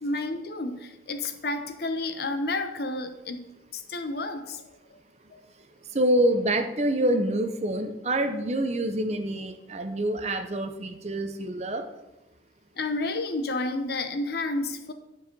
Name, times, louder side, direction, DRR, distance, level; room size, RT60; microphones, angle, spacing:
voice 1, 0.0-3.4 3.7-4.6 5.3-5.4 12.8-14.9, left 2 dB, 60° left, 8 dB, 0.8 m, -30 dB
voice 2, 5.9-11.9, right 1 dB, 40° right, 7 dB, 0.7 m, -26 dB
10.5 x 4.8 x 5.3 m, 0.97 s
head